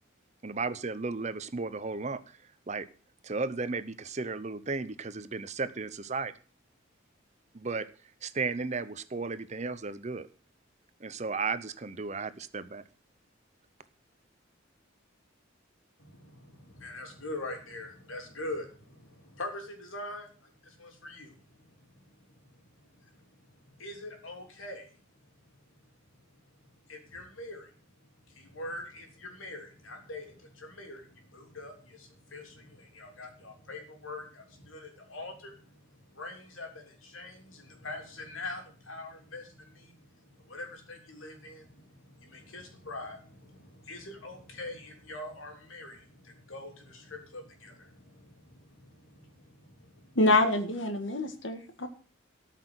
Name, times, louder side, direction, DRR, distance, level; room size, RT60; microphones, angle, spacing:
voice 1, 0.4-2.2 2.7-2.9 3.2-6.3 7.5-7.9 8.2-10.3 11.0-12.8, right 4 dB, 35° right, 14 dB, 0.7 m, -34 dB
voice 2, 16.0-25.0 25.4-25.5 26.0-26.2 26.6-27.8 28.2-50.2, left 2 dB, 85° left, 3 dB, 3.3 m, -44 dB
voice 3, 50.2-51.9, left 2 dB, 70° left, 8 dB, 1.8 m, -26 dB
13.5 x 5.9 x 7.8 m, 0.41 s
head